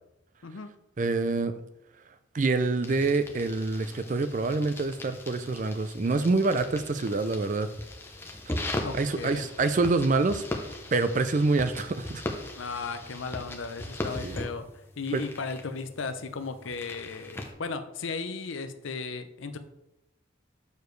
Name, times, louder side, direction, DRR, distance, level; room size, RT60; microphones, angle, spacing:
voice 1, 1.0-1.5 2.3-7.7 8.5-8.6 8.9-10.5 10.9-12.2 14.2-14.4 15.1-15.2, right 3 dB, 40° right, 10 dB, 0.4 m, -26 dB
sound 1, 2.8-17.5, left 1 dB, 10° left, 0.7 m, -39 dB
voice 2, 8.8-9.4 12.6-19.6, left 4 dB, 75° left, 9 dB, 0.6 m, -36 dB
6.9 x 6.7 x 3.2 m, 0.87 s
head